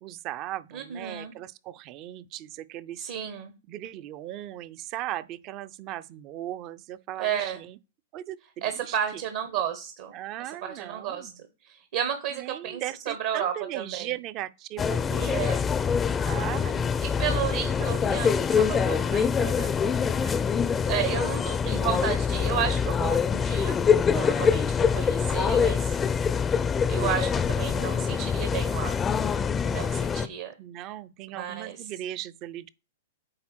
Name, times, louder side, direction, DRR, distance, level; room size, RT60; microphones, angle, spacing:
voice 1, 0.0-3.0 3.7-7.8 8.1-9.0 10.1-11.3 12.3-15.4 16.2-17.1 20.2-20.4 30.6-32.7, right 13 dB, 40° right, 0.5 m, -38 dB
voice 2, 0.7-1.3 3.0-3.5 7.2-7.6 8.6-10.1 10.4-11.3 11.6-14.1 15.3-15.7 17.2-19.9 20.9-23.8 24.1-26.0 26.9-29.0 29.6-30.9 31.3-31.9, right 9 dB, 65° right, 1.1 m, -32 dB
sound 1, 14.8-30.3, left 6 dB, 20° left, 0.4 m, -25 dB
8.8 x 3.5 x 4.4 m
hypercardioid pair, 115°, 0 cm